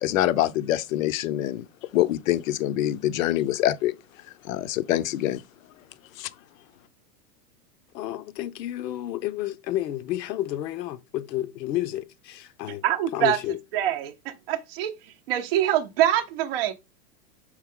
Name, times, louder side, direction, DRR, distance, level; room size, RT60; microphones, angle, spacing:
voice 1, 0.0-4.0 4.4-5.4 6.2-6.3, left 13 dB, 55° left, 0.6 m, -25 dB
voice 2, 7.9-12.8 13.1-13.6, left 14 dB, 80° left, 0.8 m, -31 dB
voice 3, 12.8-13.4 13.7-14.9 15.3-16.7, right 12 dB, 40° right, 0.6 m, -24 dB
6.4 x 4.8 x 3.6 m
supercardioid pair, 160°, 49 cm